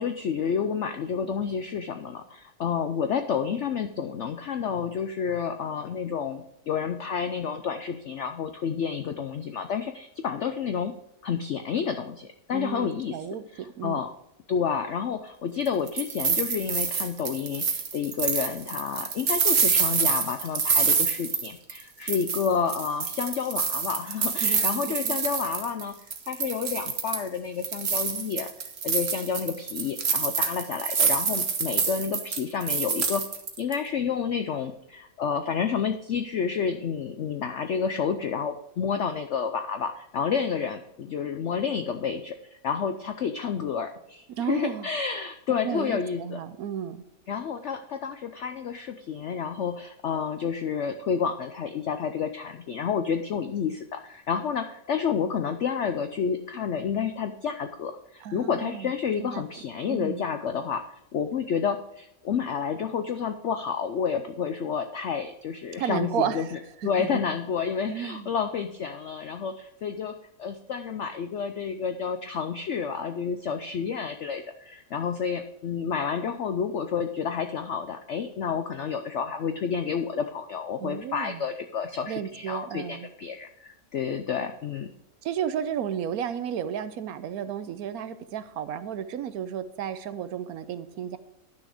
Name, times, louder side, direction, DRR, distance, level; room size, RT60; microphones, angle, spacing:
voice 1, 0.0-10.9 11.2-13.2 13.5-14.1 14.5-25.9 26.3-28.5 28.8-33.2 33.6-46.4 47.3-84.9, left 6 dB, 75° left, 8 dB, 0.6 m, -30 dB
voice 2, 12.5-14.0 24.4-25.2 44.3-44.9 45.6-47.0 58.2-58.9 59.2-59.4 59.9-60.2 65.8-67.2 67.9-68.3 80.8-81.4 82.1-83.1 85.2-91.2, right 9 dB, 70° right, 12 dB, 1.0 m, -33 dB
sound 1, 15.7-21.8 22.1-25.8 26.1-27.3 27.6-33.7, right 5 dB, 45° right, 1.1 m, -27 dB
10.5 x 6.4 x 4.9 m, 0.82 s
omnidirectional pair, 1.9 m